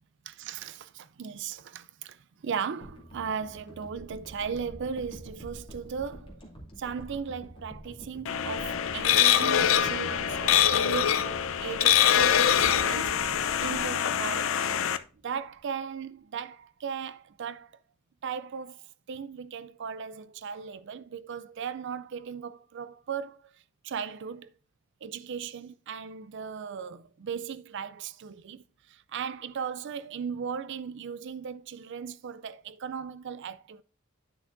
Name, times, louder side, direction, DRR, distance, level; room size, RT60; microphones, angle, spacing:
voice 1, 0.3-6.4 6.8-15.0 15.2-17.7 18.2-18.8 19.1-23.5 23.8-24.5 25.0-33.8, right 6 dB, 60° right, 0.4 m, -37 dB
sound 1, 2.8-15.1 15.4-15.6, equal, 25° left, 2.5 m, -46 dB
sound 2, 8.3-15.0, left 9 dB, 80° left, 0.6 m, -24 dB
10.5 x 6.0 x 2.6 m
head